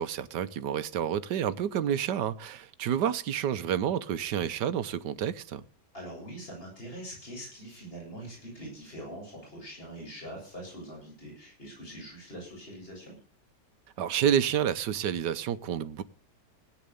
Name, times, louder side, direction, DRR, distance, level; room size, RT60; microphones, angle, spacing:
voice 1, 0.0-5.6 14.0-16.0, right 9 dB, 75° right, 1.5 m, -29 dB
voice 2, 5.9-13.1, right 1 dB, 30° left, 8.2 m, -43 dB
17.5 x 9.7 x 6.8 m
omnidirectional pair, 1.9 m